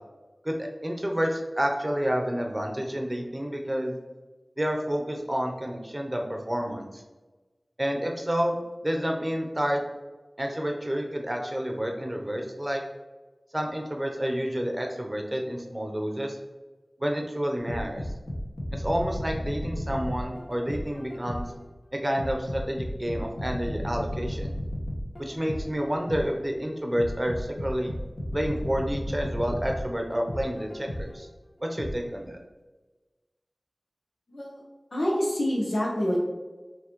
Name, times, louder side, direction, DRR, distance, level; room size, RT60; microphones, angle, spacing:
voice 1, 0.4-3.9 4.6-7.0 7.8-9.8 10.4-12.8 13.5-16.4 17.0-18.0 18.7-21.4 22.0-24.6 25.2-27.9 28.3-31.3 31.6-32.4, equal, 25° right, 2 dB, 0.7 m, -29 dB
sound 1, 17.7-21.6 22.2-26.4 27.0-31.2 31.8-31.9, equal, 60° left, 1.1 m, -34 dB
voice 2, 34.3-34.6 34.9-36.2, equal, 85° left, -4 dB, 0.9 m, -26 dB
5.6 x 2.9 x 3.0 m, 1.2 s
wide cardioid pair, 40°, 0 cm